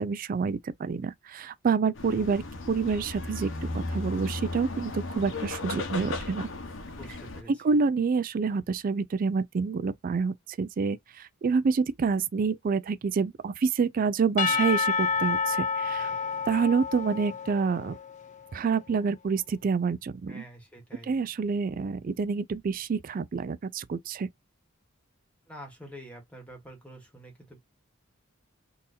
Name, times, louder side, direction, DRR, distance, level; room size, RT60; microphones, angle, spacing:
voice 1, 0.0-6.5 7.5-11.0 11.4-16.1 16.5-18.0 18.5-20.4 21.1-24.3, right 5 dB, 40° right, 0.3 m, -27 dB
sound 1, 2.0-7.4, left 2 dB, 65° left, 1.0 m, -35 dB
voice 2, 7.0-7.7 20.3-21.1 25.5-27.6, equal, 5° left, 1.3 m, -47 dB
Percussion / Church bell, 14.4-18.2, left 5 dB, 35° left, 0.5 m, -29 dB
3.9 x 2.7 x 2.5 m
head